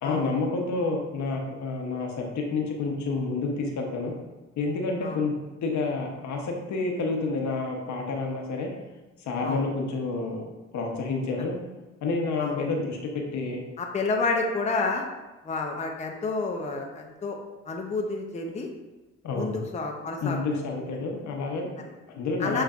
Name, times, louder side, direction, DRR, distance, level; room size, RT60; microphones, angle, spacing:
voice 1, 0.0-4.1 4.6-5.3 5.6-8.7 9.2-11.6 12.0-13.6 19.2-19.5 20.2-21.7 22.1-22.6, left 3 dB, 70° left, 1 dB, 0.9 m, -29 dB
voice 2, 13.8-15.1 15.4-17.4 17.7-18.7 19.3-20.4 21.8-21.9 22.4-22.6, left 3 dB, 25° left, 2 dB, 0.5 m, -29 dB
6.6 x 3.2 x 2.4 m, 1.1 s
cardioid pair, 90°, 30 cm